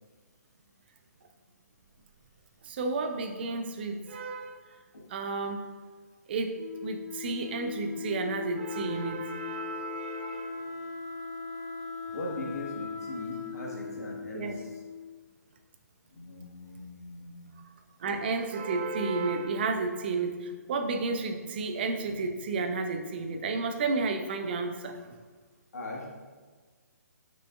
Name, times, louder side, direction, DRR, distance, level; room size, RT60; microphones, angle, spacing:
voice 1, 2.6-4.8 5.1-5.7 6.3-6.6 6.8-10.7 14.3-14.7 18.0-25.2, right 3 dB, 35° right, 5 dB, 0.4 m, -32 dB
Wind instrument woodwind instrument, 6.5-15.3, left 6 dB, 30° left, 0.6 m, -39 dB
voice 2, 12.1-14.5 16.1-17.5 25.7-26.1, left 1 dB, 60° left, -2 dB, 1.1 m, -40 dB
6.0 x 3.3 x 2.3 m, 1.4 s
figure-of-eight pair, 135°, 10 cm